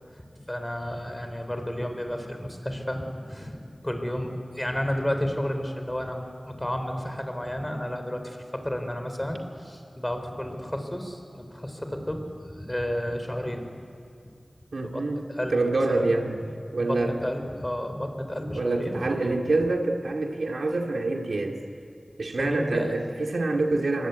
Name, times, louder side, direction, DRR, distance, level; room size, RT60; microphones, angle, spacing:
voice 1, 0.2-13.7 14.8-15.0 15.3-16.1 16.8-19.1 22.4-23.0, equal, 15° left, 6 dB, 3.8 m, -32 dB
voice 2, 14.7-16.4 16.7-17.2 18.6-21.6 22.2-24.1, right 2 dB, 80° right, 2 dB, 2.3 m, -26 dB
25.0 x 23.0 x 9.3 m, 2.5 s
wide cardioid pair, 75°, 0 cm